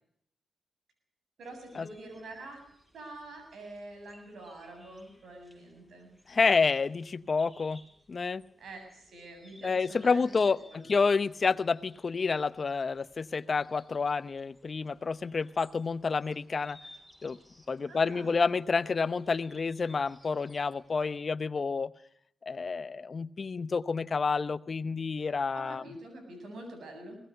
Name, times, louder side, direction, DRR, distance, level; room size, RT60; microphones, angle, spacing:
sound 1, 1.4-21.1, left 1 dB, 5° right, 7.7 m, -60 dB
voice 1, 1.4-2.6 2.9-6.1 8.6-10.4 10.7-10.8 17.9-18.6 25.5-27.2, right 2 dB, 80° right, 5 dB, 8.0 m, -46 dB
voice 2, 6.3-7.8 8.1-8.4 9.6-16.8 17.2-17.4 17.7-21.9 22.5-25.8, left 4 dB, 50° left, 16 dB, 0.8 m, -29 dB
22.0 x 18.0 x 6.7 m, 0.69 s
cardioid pair, 55°, 0 cm